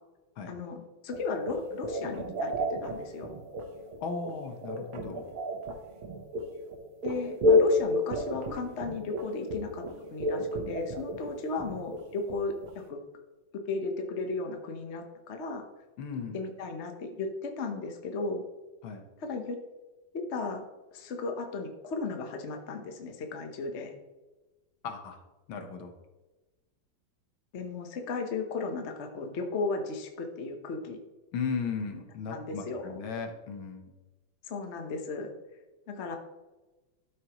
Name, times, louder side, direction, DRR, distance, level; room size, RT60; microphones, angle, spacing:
voice 1, 0.5-3.3 7.0-9.8 10.1-13.0 13.7-15.6 16.3-18.4 19.2-19.6 20.1-20.6 20.9-23.9 27.5-31.0 32.3-33.0 34.4-35.3 35.9-36.2, left 3 dB, 45° left, 4 dB, 1.0 m, -35 dB
sound 1, 1.1-12.8, left 1 dB, 80° right, 2.0 m, -30 dB
voice 2, 4.0-5.3 11.5-11.6 16.0-16.4 18.8-19.0 24.8-25.2 25.5-25.9 31.3-33.9, left 5 dB, 75° left, 5 dB, 1.8 m, -36 dB
12.5 x 6.7 x 3.0 m, 1.1 s
omnidirectional pair, 2.3 m